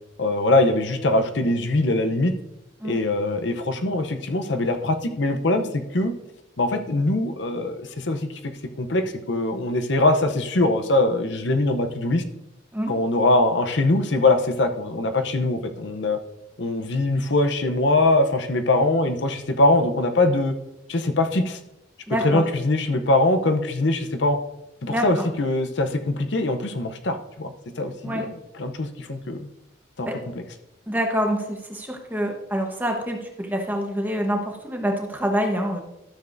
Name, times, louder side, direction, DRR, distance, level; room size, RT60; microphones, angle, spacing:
voice 1, 0.2-2.3 2.8-6.1 6.6-8.3 8.8-12.2 12.9-16.2 16.6-20.5 20.9-21.6 22.2-24.4 24.8-29.5 30.0-30.1, left 2 dB, 65° left, 7 dB, 0.7 m, -22 dB
voice 2, 22.1-22.4 24.9-25.2 28.0-28.3 30.1-30.2 30.9-35.8, equal, 10° right, 2 dB, 1.1 m, -26 dB
13.0 x 7.0 x 2.6 m, 0.88 s
head